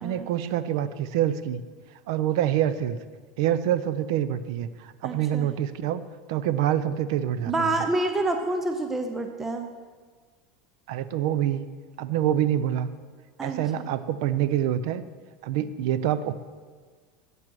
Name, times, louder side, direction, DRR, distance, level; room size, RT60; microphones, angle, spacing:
voice 1, 0.0-1.6 2.1-3.0 3.4-6.0 6.3-7.7 10.9-11.7 12.0-12.9 13.4-15.0 15.4-16.3, right 11 dB, 65° right, 14 dB, 0.6 m, -26 dB
voice 2, 5.0-5.5 7.5-9.7 13.4-13.6, right 2 dB, 10° right, 5 dB, 0.6 m, -28 dB
11.0 x 7.9 x 6.1 m, 1.5 s
supercardioid pair, 175°, 3 cm